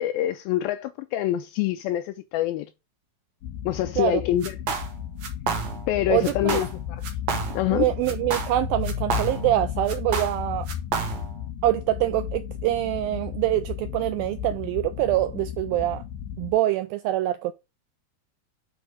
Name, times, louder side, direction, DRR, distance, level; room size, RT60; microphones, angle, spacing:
voice 1, 0.0-2.7 3.7-4.6 5.9-7.0 7.5-7.9, left 13 dB, 85° left, 2.2 m, -25 dB
sound 1, 3.4-16.5, left 9 dB, 65° left, 2.9 m, -34 dB
sound 2, 4.4-4.9 5.2-5.9 6.2-6.8 7.0-7.8 8.1-9.6 9.9-11.4, right 5 dB, 55° right, 2.2 m, -30 dB
voice 2, 6.1-6.6 7.7-10.7 11.6-16.0 16.4-17.5, right 14 dB, 85° right, 2.1 m, -25 dB
8.8 x 4.4 x 4.8 m
omnidirectional pair, 4.6 m